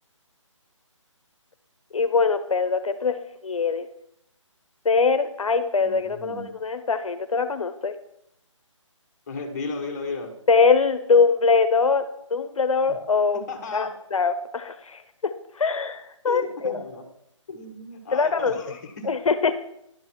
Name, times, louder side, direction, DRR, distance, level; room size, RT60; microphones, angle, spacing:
voice 1, 1.9-3.2 3.4-3.9 4.8-7.9 10.5-12.0 12.3-13.4 13.7-16.7 18.1-18.6 19.0-19.6, left 4 dB, 90° left, 10 dB, 0.8 m, -22 dB
voice 2, 5.8-6.5 9.3-10.4 12.9-13.0 13.3-13.9 16.2-17.1 17.5-19.1, left 3 dB, 30° left, 3 dB, 1.5 m, -35 dB
11.0 x 5.4 x 4.5 m, 0.79 s
hypercardioid pair, 170°, 17 cm